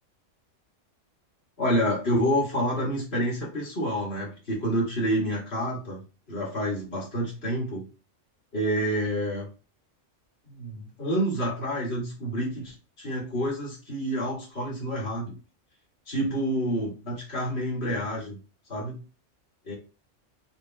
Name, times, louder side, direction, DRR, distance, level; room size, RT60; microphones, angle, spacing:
voice 1, 1.6-6.0 6.3-7.9 8.5-9.5 10.5-15.4 16.1-18.4 18.7-19.0 19.7-19.8, equal, 55° left, -6 dB, 2.1 m, -28 dB
6.6 x 2.7 x 2.2 m, 0.32 s
omnidirectional pair, 1.3 m